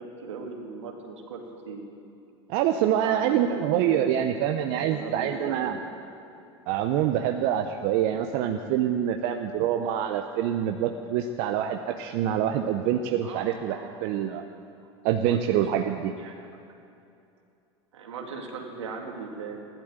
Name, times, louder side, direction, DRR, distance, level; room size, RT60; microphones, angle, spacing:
voice 1, 0.0-1.9 3.0-4.4 4.7-5.8 13.2-14.0 15.3-15.6 16.2-16.3 17.9-19.6, right 4 dB, 85° right, 1 dB, 2.4 m, -38 dB
voice 2, 2.5-5.8 6.7-14.4 15.0-16.1, right 10 dB, 60° right, 6 dB, 0.8 m, -26 dB
15.0 x 12.0 x 7.9 m, 2.7 s
hypercardioid pair, 90°, 15 cm